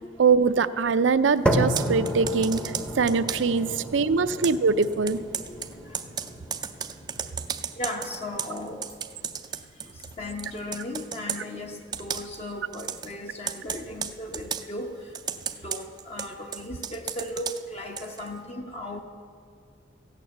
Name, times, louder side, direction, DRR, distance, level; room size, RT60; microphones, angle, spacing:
voice 1, 0.2-5.2, right 5 dB, 85° right, 14 dB, 0.5 m, -23 dB
sound 1, 1.5-9.5, equal, 5° left, 0.7 m, -32 dB
Computer keyboard, 1.6-3.6 4.4-10.1 10.4-11.4 11.9-12.4 12.7-13.1 13.5-14.7 15.1-18.3, right 7 dB, 20° right, 0.4 m, -34 dB
voice 2, 3.7-4.4 5.5-5.6 5.8-6.0 7.7-8.9 9.8-15.2 15.5-19.0, left 1 dB, 35° left, 2 dB, 0.9 m, -37 dB
sound 2, 10.2-10.9 11.9-12.7 13.7-14.4, equal, 75° left, 2.4 m, -53 dB
15.0 x 9.0 x 7.1 m, 2.2 s
head